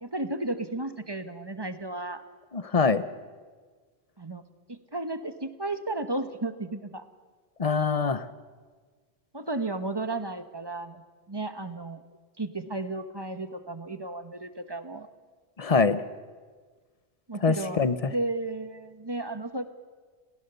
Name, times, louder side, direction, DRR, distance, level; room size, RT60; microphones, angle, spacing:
voice 1, 0.0-2.2 4.2-4.4 4.7-7.0 9.3-11.0 11.3-12.0 12.4-15.1 17.3-19.7, right 2 dB, 25° right, 9 dB, 1.1 m, -33 dB
voice 2, 2.5-3.0 7.6-8.3 15.6-16.0 17.4-18.1, left 5 dB, 35° left, 13 dB, 0.9 m, -24 dB
29.5 x 15.5 x 6.9 m, 1.5 s
omnidirectional pair, 1.1 m